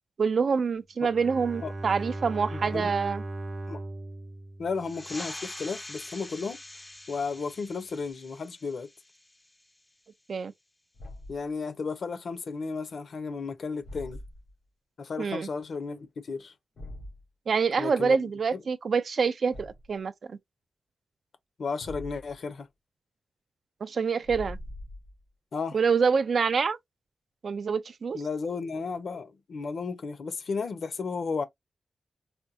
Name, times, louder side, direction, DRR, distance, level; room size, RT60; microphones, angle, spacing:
voice 1, 0.2-3.2 10.3-10.5 15.2-15.5 17.5-20.4 23.8-24.6 25.7-26.8 27.4-28.2, right 5 dB, 55° right, 0.4 m, -26 dB
Bowed string instrument, 1.0-5.3, right 2 dB, 40° right, 0.8 m, -38 dB
voice 2, 2.5-2.9 3.7-3.8 4.6-6.6 7.1-8.9 11.3-14.2 15.0-16.5 17.8-18.6 21.6-22.7 25.5-25.8 28.1-31.4, left 4 dB, 60° left, 0.8 m, -34 dB
sound 1, 4.8-9.9, left 2 dB, 15° left, 0.5 m, -44 dB
Thump thud, 10.9-11.5 13.8-14.5 16.8-17.2 19.5-20.0 21.8-22.4 24.2-25.2, left 1 dB, 90° left, 2.1 m, -42 dB
4.3 x 2.3 x 2.6 m
wide cardioid pair, 180°, 0 cm